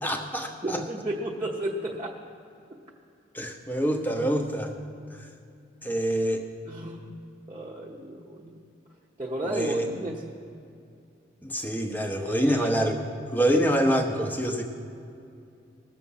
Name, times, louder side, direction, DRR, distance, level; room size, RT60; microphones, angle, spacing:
voice 1, 0.0-0.8 3.3-4.7 5.1-5.2 5.8-6.4 9.5-9.9 11.4-13.0 13.3-14.6, equal, 10° left, 4 dB, 0.9 m, -26 dB
voice 2, 0.6-2.2 6.7-7.2 7.5-8.7 9.2-10.2 12.3-12.7 13.5-13.6, right 1 dB, 25° right, -4 dB, 0.9 m, -33 dB
19.5 x 7.1 x 5.6 m, 2.6 s
head